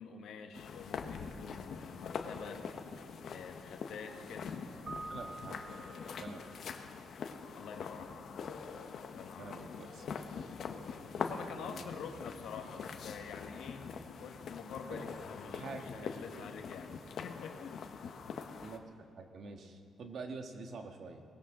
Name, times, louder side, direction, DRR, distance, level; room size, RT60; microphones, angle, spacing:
voice 1, 0.0-2.6 3.3-4.6 7.5-8.3 9.1-9.7 11.2-13.9 14.2-17.8, left 6 dB, 80° left, 4 dB, 1.5 m, -47 dB
sound 1, 0.5-18.8, left 6 dB, 60° left, 1.1 m, -44 dB
Keyboard (musical), 4.9-6.7, right 2 dB, 35° right, 0.9 m, -47 dB
voice 2, 5.1-5.6 6.2-6.4 9.4-10.0 11.6-11.9 14.9-15.0 15.5-16.1 18.6-21.2, right 4 dB, 60° right, 5 dB, 1.5 m, -46 dB
19.0 x 17.0 x 3.8 m, 2.4 s
cardioid pair, 90°, 0 cm